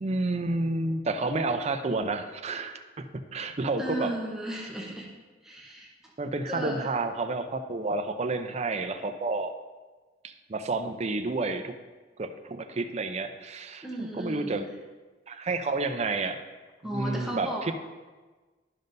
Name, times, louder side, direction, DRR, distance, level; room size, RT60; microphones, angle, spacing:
voice 1, 0.0-4.1 6.2-9.5 10.2-11.7 12.2-14.7 15.3-16.4 16.8-17.7, right 3 dB, 40° right, 7 dB, 0.5 m, -30 dB
voice 2, 3.8-5.1 5.4-6.1 6.5-6.9 13.8-14.7 16.8-17.6, right 1 dB, 5° right, -4 dB, 1.0 m, -35 dB
12.5 x 5.3 x 2.6 m, 1.3 s
head